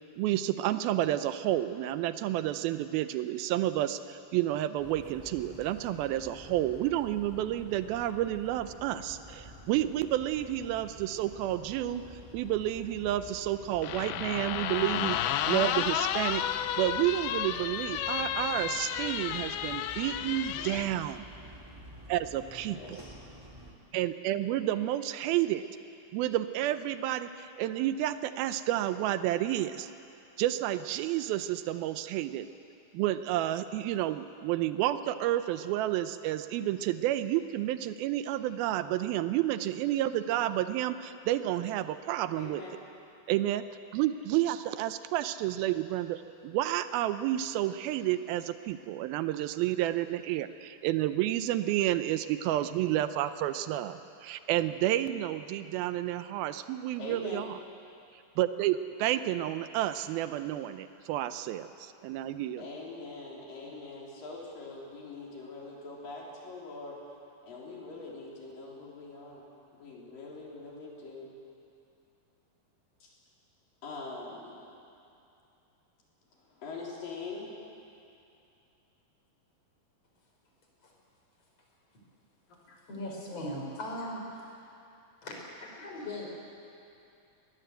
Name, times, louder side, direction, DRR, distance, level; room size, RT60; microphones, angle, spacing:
voice 1, 0.2-12.0 12.3-16.4 16.8-21.2 22.1-23.0 23.9-25.6 26.1-29.9 30.4-32.5 32.9-42.6 43.3-43.6 43.9-57.6 58.4-62.7, right 13 dB, 80° right, 12 dB, 2.4 m, -30 dB
sound 1, 4.8-23.7, equal, 10° right, 1.3 m, -50 dB
sound 2, 13.8-20.9, left 10 dB, 90° left, 2.6 m, -32 dB
voice 2, 22.7-23.1 42.3-42.8 57.0-57.5 62.6-67.0 67.4-69.4 69.8-71.3 73.0-73.1 73.8-74.5 76.5-77.5 82.7-82.8, left 3 dB, 65° left, -3 dB, 5.1 m, -43 dB
voice 3, 82.9-84.5 85.2-86.3, left 1 dB, 40° left, -1 dB, 5.0 m, -39 dB
21.0 x 19.5 x 7.9 m, 2.7 s
omnidirectional pair, 4.3 m